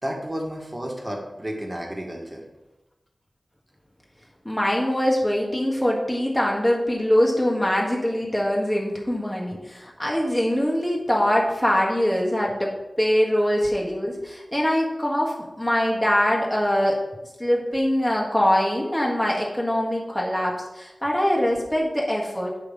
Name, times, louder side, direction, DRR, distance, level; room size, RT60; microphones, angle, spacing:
voice 1, 0.0-2.4, equal, 25° right, 0 dB, 2.0 m, -32 dB
voice 2, 4.4-17.0 17.4-22.5, equal, 10° left, -2 dB, 1.6 m, -23 dB
8.1 x 5.8 x 5.2 m, 0.98 s
wide cardioid pair, 85°, 0 cm